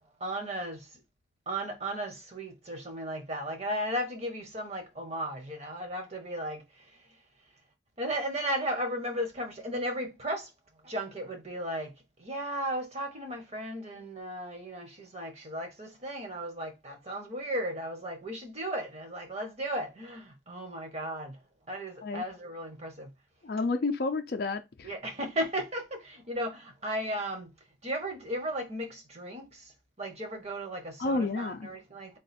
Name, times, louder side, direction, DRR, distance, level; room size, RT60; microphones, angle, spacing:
voice 1, 0.2-0.9 1.5-6.6 8.0-10.5 10.8-21.4 21.7-23.1 24.8-27.5 27.8-29.7 30.0-32.2, right 1 dB, 35° right, 1.0 m, -35 dB
voice 2, 23.4-24.9 31.0-31.7, left 3 dB, 55° left, 0.4 m, -30 dB
3.8 x 2.5 x 4.1 m
head